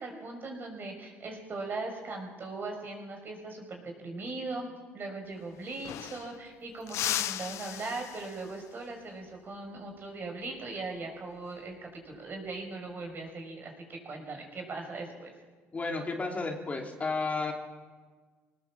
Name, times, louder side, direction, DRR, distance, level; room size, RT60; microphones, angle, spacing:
voice 1, 0.0-15.3, right 3 dB, 45° right, 3 dB, 5.6 m, -39 dB
sound 1, 5.2-5.3 5.5-6.5 6.9-8.6 11.1-11.4 12.8-13.3, left 12 dB, 70° left, 0.7 m, -36 dB
voice 2, 15.7-17.5, left 3 dB, 30° left, 2 dB, 2.8 m, -32 dB
21.5 x 19.0 x 7.4 m, 1.5 s
supercardioid pair, 90°, 5 cm